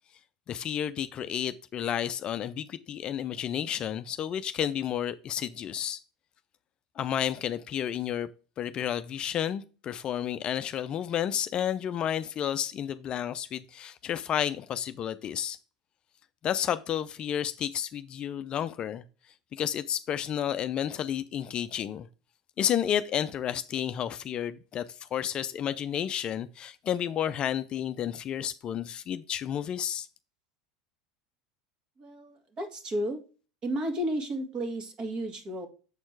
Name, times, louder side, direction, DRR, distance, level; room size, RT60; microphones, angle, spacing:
voice 1, 0.5-6.0 7.0-8.3 8.6-15.6 16.4-19.0 19.5-22.1 22.6-30.1, left 9 dB, 40° left, 0.4 m, -31 dB
voice 2, 32.0-33.2 33.6-35.7, right 1 dB, 35° right, 1.9 m, -32 dB
7.1 x 4.4 x 4.6 m
hypercardioid pair, 85°, 2 cm